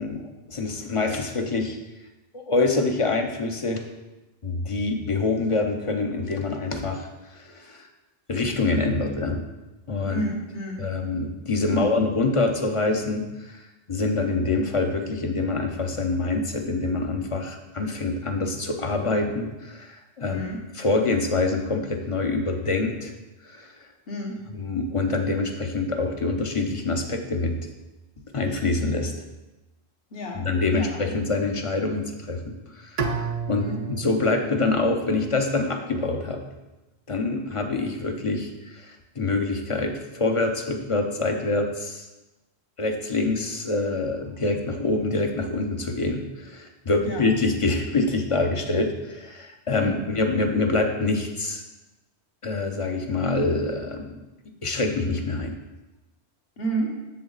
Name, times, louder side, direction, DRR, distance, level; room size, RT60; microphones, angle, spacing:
voice 1, 0.0-1.8 2.3-3.8 4.4-7.9 8.3-9.4 9.9-10.2 10.8-13.6 13.9-20.4 20.8-23.1 23.4-23.7 24.5-27.5 28.3-29.1 30.4-36.4 37.1-42.1 42.8-51.6 52.4-54.2 54.6-55.5, left 3 dB, 30° left, 4 dB, 0.8 m, -26 dB
voice 2, 10.1-10.8 11.7-11.8 20.2-20.6 24.1-24.4 30.1-30.4 30.7-31.0 33.6-33.8 47.0-47.3 49.8-50.0 56.6-56.9, right 1 dB, 60° left, 0 dB, 1.6 m, -30 dB
Bowed string instrument, 33.0-36.0, right 5 dB, 45° right, 0.6 m, -33 dB
7.7 x 7.0 x 4.0 m, 1.1 s
omnidirectional pair, 1.1 m